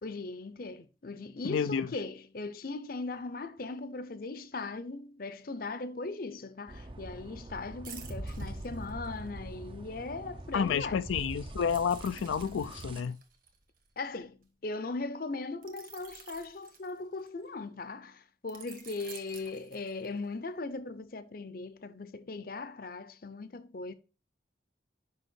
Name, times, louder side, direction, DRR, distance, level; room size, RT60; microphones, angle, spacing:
voice 1, 0.0-11.0 14.0-23.9, left 3 dB, 50° left, 0.6 m, -39 dB
voice 2, 1.4-1.9 10.5-13.2, left 6 dB, 90° left, 0.4 m, -30 dB
sound 1, 6.7-13.0, right 1 dB, 25° right, 0.5 m, -43 dB
sound 2, 7.8-9.4 11.7-14.4 15.6-17.5 18.5-20.3 20.8-21.0, right 8 dB, 45° right, 1.4 m, -52 dB
6.4 x 5.5 x 4.4 m
head